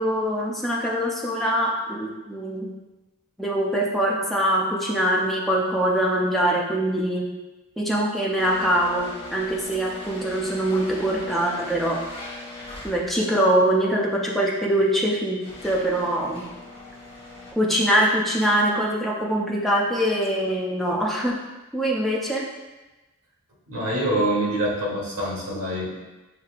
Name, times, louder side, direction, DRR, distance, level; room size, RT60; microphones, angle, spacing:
voice 1, 0.0-2.7 3.4-7.3 7.8-12.0 12.8-15.4 15.6-16.4 17.6-21.4 21.7-22.5, right 1 dB, ahead, -4 dB, 0.5 m, -23 dB
sound 1, 8.3-13.4 14.3-14.4 15.1-17.5, left 2 dB, 25° left, 1.2 m, -40 dB
voice 2, 23.7-25.9, right 1 dB, 70° right, -5 dB, 1.3 m, -25 dB
6.6 x 2.8 x 2.4 m, 1.1 s
head